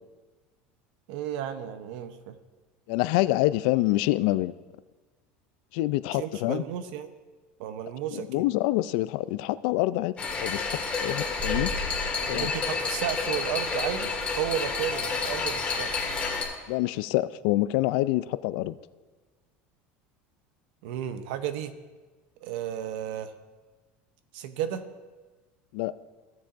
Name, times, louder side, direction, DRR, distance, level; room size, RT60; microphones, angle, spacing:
voice 1, 1.1-2.4 6.1-7.1 7.6-8.4 12.3-15.9 20.8-21.7 22.4-23.3 24.3-24.9, right 10 dB, 75° right, 10 dB, 0.7 m, -33 dB
voice 2, 2.9-4.5 5.7-6.6 8.1-10.7 11.0-11.7 12.2-12.5 16.7-18.8 25.7-25.9, left 17 dB, 70° left, 16 dB, 0.3 m, -26 dB
sound 1, 10.2-16.4, left 4 dB, 25° left, 1.7 m, -29 dB
16.0 x 7.1 x 2.5 m, 1.3 s
supercardioid pair, 140°, 5 cm